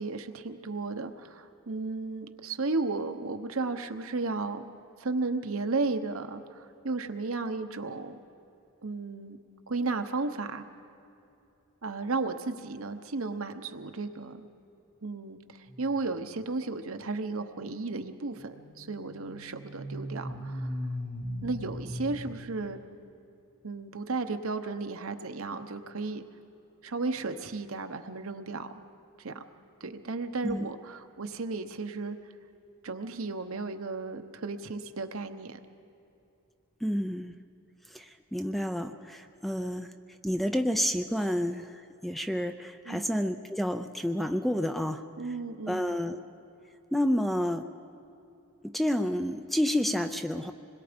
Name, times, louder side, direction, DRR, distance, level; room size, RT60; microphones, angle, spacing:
voice 1, 0.0-4.7 5.0-8.2 8.8-9.4 9.7-10.6 11.8-14.5 15.0-20.7 21.4-22.8 23.6-26.2 26.8-28.7 29.2-29.4 29.8-32.2 32.8-35.6 42.9-43.1 45.2-46.0, right 3 dB, 70° right, 7 dB, 1.0 m, -34 dB
sound 1, 15.7-16.1 18.3-22.3, equal, 65° left, 6.3 m, -38 dB
voice 2, 36.8-37.3 37.9-39.9 40.2-45.0 45.7-46.2 46.9-47.7 48.6-50.5, equal, ahead, 8 dB, 0.5 m, -29 dB
26.5 x 21.0 x 5.2 m, 2.7 s
head